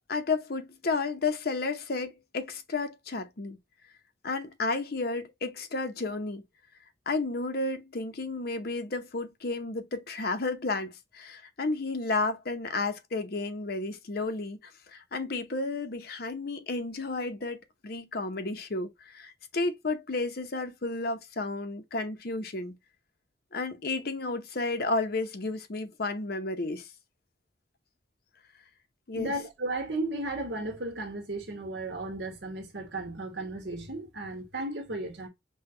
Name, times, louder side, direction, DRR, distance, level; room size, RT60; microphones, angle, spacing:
voice 1, 0.1-3.6 4.2-6.4 7.1-22.8 23.5-26.9 29.1-29.3, left 3 dB, 60° left, 0.8 m, -32 dB
voice 2, 29.1-35.3, right 2 dB, 85° right, 1.4 m, -35 dB
5.5 x 2.3 x 2.7 m
head